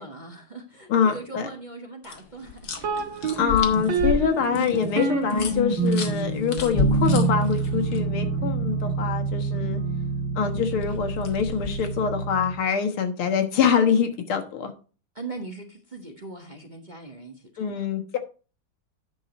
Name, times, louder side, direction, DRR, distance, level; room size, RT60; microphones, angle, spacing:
voice 1, 0.0-2.7 15.1-17.8, right 3 dB, 25° right, 2 dB, 1.2 m, -40 dB
voice 2, 0.9-1.5 3.4-9.8 10.4-14.7 17.6-18.2, left 7 dB, 80° left, 5 dB, 2.3 m, -24 dB
sound 1, 2.0-8.0 10.6-12.0, left 5 dB, 50° left, 1.8 m, -33 dB
sound 2, 2.8-12.6, right 3 dB, 65° right, 2.4 m, -26 dB
10.0 x 6.1 x 4.3 m, 0.35 s
omnidirectional pair, 2.3 m